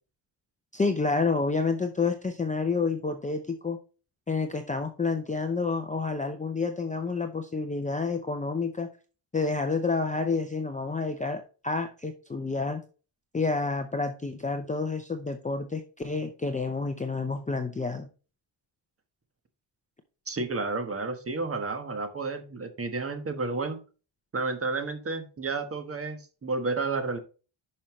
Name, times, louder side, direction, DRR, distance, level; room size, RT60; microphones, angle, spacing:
voice 1, 0.7-3.8 4.3-8.9 9.3-12.8 13.3-18.1, left 4 dB, 15° left, 6 dB, 0.6 m, -29 dB
voice 2, 20.3-23.8 24.3-27.2, right 3 dB, 25° right, 7 dB, 1.3 m, -31 dB
10.5 x 5.6 x 3.1 m, 0.35 s
wide cardioid pair, 160°, 50 cm